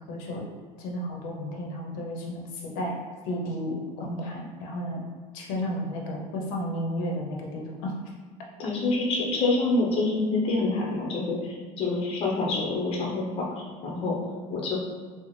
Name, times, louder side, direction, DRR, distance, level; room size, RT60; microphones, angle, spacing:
voice 1, 0.1-0.5 0.8-3.0 3.3-5.0 5.3-7.9, equal, 90° left, 0 dB, 0.6 m, -32 dB
voice 2, 8.6-14.2 14.5-14.8, left 2 dB, 35° left, -2 dB, 0.7 m, -27 dB
3.8 x 2.0 x 3.1 m, 1.5 s
cardioid pair, 150°, 17 cm